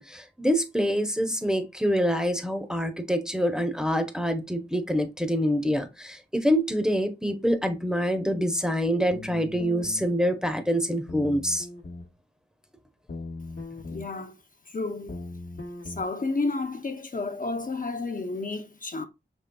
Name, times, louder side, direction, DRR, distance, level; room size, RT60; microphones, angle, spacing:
voice 1, 0.0-11.7, equal, 5° right, 0.6 m, -26 dB
sound 1, 9.1-10.1 11.1-12.1 13.1-14.1 15.1-16.1, left 2 dB, 85° left, 0.9 m, -39 dB
voice 2, 13.9-14.3 14.7-15.1 15.9-19.1, left 3 dB, 45° left, 0.5 m, -31 dB
5.2 x 3.2 x 2.2 m
wide cardioid pair, 65°, 19 cm